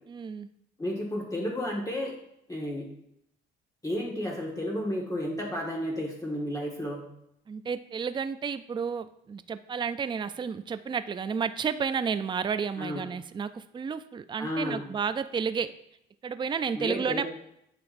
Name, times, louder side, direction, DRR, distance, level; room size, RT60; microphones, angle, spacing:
voice 1, 0.1-0.5 7.5-15.7 16.2-17.2, right 6 dB, 25° right, 12 dB, 0.4 m, -31 dB
voice 2, 0.8-2.1 2.5-2.9 3.8-7.0 12.8-13.0 14.4-14.8 16.8-17.2, left 1 dB, 15° left, -3 dB, 1.6 m, -32 dB
8.5 x 6.0 x 2.6 m, 0.78 s
cardioid pair, 90°, 20 cm